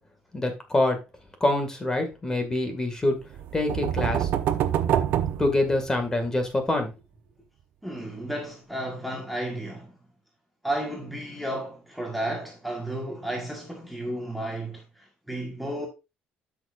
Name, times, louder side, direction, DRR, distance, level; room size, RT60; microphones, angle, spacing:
voice 1, 0.3-1.0 1.4-3.2 3.5-4.3 5.4-6.9, left 2 dB, 15° left, 2.1 m, -25 dB
sound 1, 3.3-6.3, right 10 dB, 70° right, 0.9 m, -26 dB
voice 2, 7.8-9.9 10.6-15.9, right 1 dB, ahead, 1.6 m, -33 dB
12.5 x 6.3 x 2.6 m
cardioid pair, 135°, 4 cm